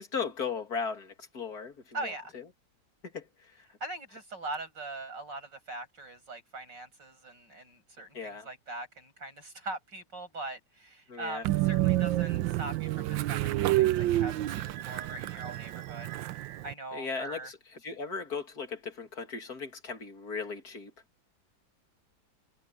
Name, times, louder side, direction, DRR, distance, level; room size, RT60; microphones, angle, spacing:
voice 1, 0.0-1.7 2.0-2.1 3.0-3.3 8.1-8.5 11.1-11.4 16.9-17.6 17.8-20.9, left 5 dB, 55° left, 2.9 m, -36 dB
voice 2, 1.9-2.3 3.8-16.1 16.6-17.5, right 2 dB, 70° right, 8.8 m, -41 dB
Train, 11.4-16.7, right 15 dB, 85° right, 1.4 m, -29 dB
omnidirectional pair, 2.0 m